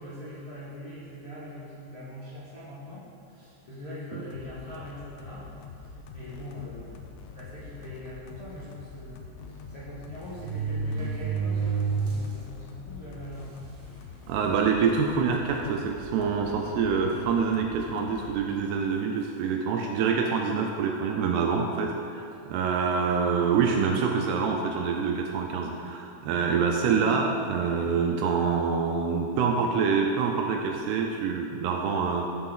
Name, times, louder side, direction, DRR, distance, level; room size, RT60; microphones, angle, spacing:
voice 1, 0.0-13.7, left 1 dB, 50° left, -11 dB, 1.7 m, -42 dB
sound 1, 4.3-18.4, left 4 dB, 80° left, 3.0 m, -45 dB
sound 2, 6.6-6.8 7.6-7.7 8.0-8.1 9.4-9.5 10.2-12.4 12.9-13.0 13.8-13.9 14.3-14.6 15.3-15.4 16.7-17.5 18.5-18.7, right 5 dB, 60° right, 2.8 m, -31 dB
voice 2, 14.3-32.3, right 5 dB, 80° right, 2 dB, 2.5 m, -26 dB
12.5 x 7.0 x 3.8 m, 2.4 s
omnidirectional pair, 5.1 m